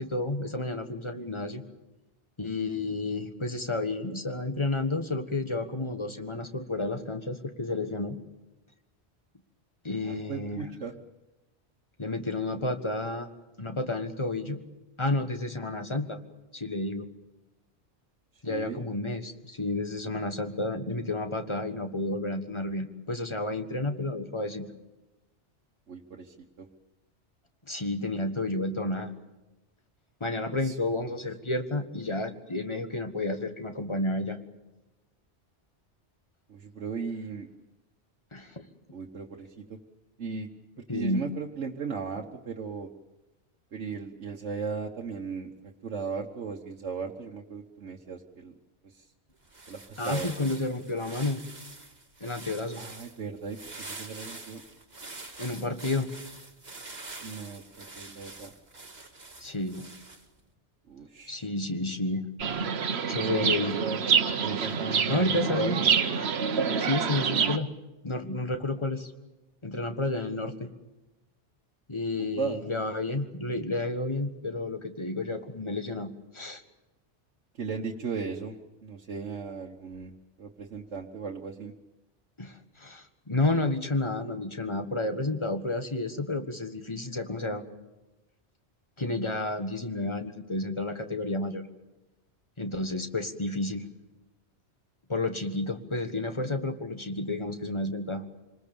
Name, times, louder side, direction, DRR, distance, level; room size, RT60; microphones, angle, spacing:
voice 1, 0.0-1.6 2.4-8.2 9.8-10.6 12.0-13.3 13.6-14.6 15.0-16.2 16.5-17.1 18.4-24.6 27.7-29.1 30.2-34.4 38.3-38.6 40.9-41.2 50.0-51.4 52.2-52.8 55.4-56.1 59.4-59.9 61.3-62.2 63.1-63.7 65.1-65.8 66.8-67.7 68.0-69.1 69.6-70.7 71.9-76.1 76.3-76.6 82.4-87.6 89.0-91.6 92.6-93.8 95.1-98.2, left 2 dB, 25° left, 7 dB, 1.5 m, -31 dB
voice 2, 10.0-10.9 18.5-18.8 25.9-26.7 30.6-31.0 36.5-37.5 38.9-39.8 40.2-40.5 40.9-42.9 43.7-48.5 48.8-49.0 49.7-50.6 52.8-53.6 53.9-54.6 57.2-58.5 60.9-61.5 63.1-63.5 63.8-64.0 64.4-66.0 72.2-72.6 77.5-78.6 78.8-81.7, right 5 dB, 85° right, -1 dB, 1.5 m, -37 dB
sound 1, 49.4-60.4, right 2 dB, 40° right, 2.0 m, -45 dB
Chirp tweet, 62.4-67.6, right 6 dB, 65° right, 1.2 m, -27 dB
26.5 x 20.5 x 7.0 m, 1.0 s
omnidirectional pair, 1.2 m